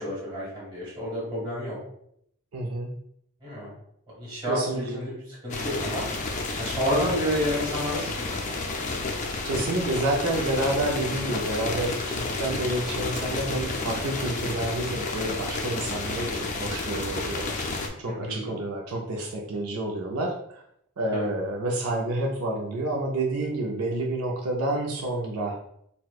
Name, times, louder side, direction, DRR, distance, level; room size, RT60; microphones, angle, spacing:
voice 1, 0.0-1.8 3.4-3.7 4.1-6.0 6.5-8.5 18.1-18.5 21.1-21.4, equal, 20° right, -7 dB, 1.5 m, -30 dB
voice 2, 2.5-2.9 4.5-5.0 9.4-17.7 18.0-20.3 21.0-25.5, right 1 dB, 75° right, -1 dB, 0.5 m, -29 dB
sound 1, 5.5-17.9, left 3 dB, 35° left, 0.4 m, -31 dB
4.2 x 2.1 x 2.3 m, 0.73 s
head